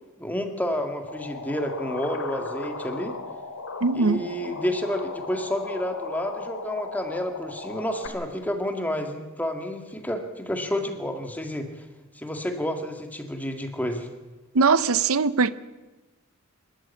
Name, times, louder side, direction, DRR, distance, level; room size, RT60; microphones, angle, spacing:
voice 1, 0.2-3.2 3.9-11.8 12.1-14.1, equal, 10° left, 2.0 m, -30 dB
sound 1, 1.1-8.1, left 3 dB, 90° left, 2.6 m, -36 dB
voice 2, 3.8-4.3 14.5-15.5, right 4 dB, 85° right, 0.7 m, -21 dB
26.0 x 13.5 x 8.4 m
head